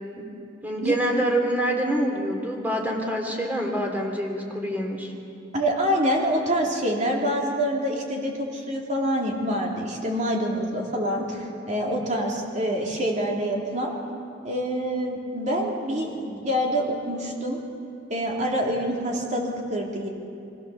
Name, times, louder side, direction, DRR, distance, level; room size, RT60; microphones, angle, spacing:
voice 1, 0.6-5.1, right 1 dB, 10° right, 1 dB, 2.8 m, -26 dB
voice 2, 5.5-13.9 14.4-17.6 18.1-20.1, equal, 40° right, -1 dB, 3.1 m, -26 dB
26.0 x 16.0 x 7.0 m, 2.6 s
head